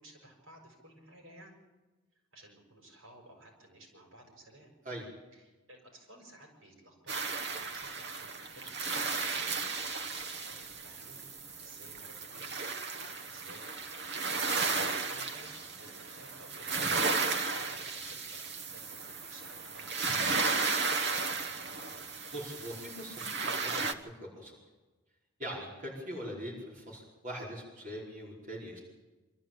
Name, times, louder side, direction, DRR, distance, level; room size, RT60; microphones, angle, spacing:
voice 1, 0.0-1.6 2.3-4.7 5.3-9.7 10.4-11.3 11.6-12.6 13.2-13.7 14.0-16.7 17.2-20.9, right 1 dB, 70° right, 1 dB, 6.4 m, -56 dB
sound 1, 7.1-23.9, right 4 dB, 55° right, 1.2 m, -34 dB
voice 2, 22.3-23.3 23.6-24.6 25.4-28.8, equal, 35° right, -4 dB, 5.0 m, -42 dB
25.0 x 13.5 x 8.8 m, 1.2 s
head